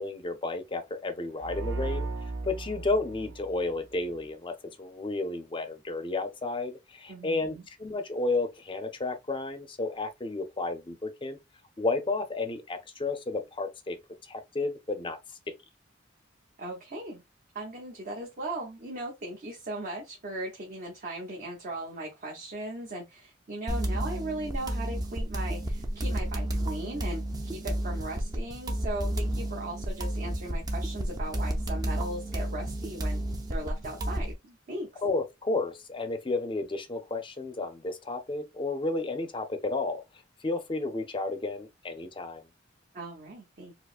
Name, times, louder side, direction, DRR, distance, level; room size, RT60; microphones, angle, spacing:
voice 1, 0.0-2.1 2.4-11.4 11.8-14.0 14.2-15.2 35.0-40.0 40.4-42.4, left 3 dB, 25° left, 0.5 m, -32 dB
sound 1, 1.4-4.2, right 3 dB, 75° right, 0.5 m, -36 dB
voice 2, 7.1-7.6 16.6-17.2 17.5-33.2 33.5-35.0 42.9-43.7, right 1 dB, 50° right, 0.8 m, -38 dB
sound 2, 23.7-34.3, right 1 dB, 20° right, 0.5 m, -31 dB
4.6 x 2.0 x 2.4 m
head